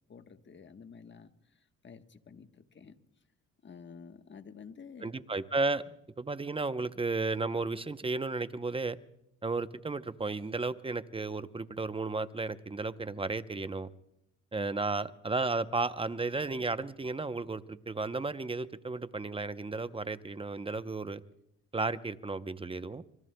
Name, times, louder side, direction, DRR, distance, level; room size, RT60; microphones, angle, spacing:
voice 1, 0.1-3.0 3.6-5.1 5.9-6.0, left 6 dB, 35° left, 8 dB, 1.2 m, -51 dB
voice 2, 5.0-5.8 6.2-9.0 9.4-13.9 14.5-21.2 21.7-23.0, right 3 dB, 15° right, 12 dB, 0.7 m, -33 dB
25.0 x 25.0 x 2.2 m, 0.80 s
cardioid pair, 85°, 32 cm